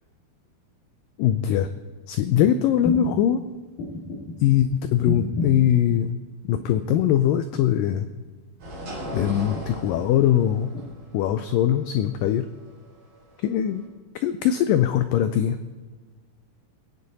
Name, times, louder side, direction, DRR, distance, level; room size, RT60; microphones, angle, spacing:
voice 1, 1.2-1.7 2.1-3.4 4.4-6.1 6.5-8.1 9.1-10.7 11.1-12.5 13.4-13.8 14.2-15.6, left 10 dB, 90° left, 10 dB, 1.9 m, -21 dB
sound 1, 2.3-2.5 2.8-3.2 3.8-4.3 5.0-5.7 6.6-7.1 7.5-8.2 9.2-9.8 10.7-10.9, left 2 dB, 60° left, 4.0 m, -31 dB
sound 2, 8.6-13.8, equal, 35° right, 5.0 m, -38 dB
22.0 x 9.2 x 4.1 m, 1.4 s
omnidirectional pair, 4.5 m